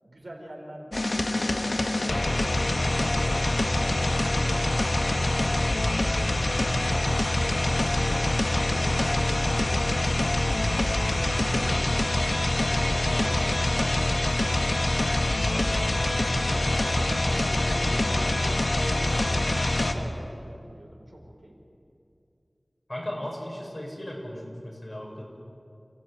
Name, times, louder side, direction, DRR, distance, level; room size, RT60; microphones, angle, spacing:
voice 1, 0.0-7.9 8.6-9.0 9.7-12.4 15.5-21.6, right 1 dB, 70° right, -1 dB, 5.2 m, -45 dB
sound 1, 0.9-19.9, left 1 dB, 70° left, 1.6 m, -25 dB
sound 2, 1.6-14.7, equal, 25° left, 3.2 m, -43 dB
voice 2, 13.1-13.5 22.9-25.2, left 1 dB, 45° left, -2 dB, 7.2 m, -36 dB
29.5 x 15.0 x 9.0 m, 2.6 s
wide cardioid pair, 40°, 0 cm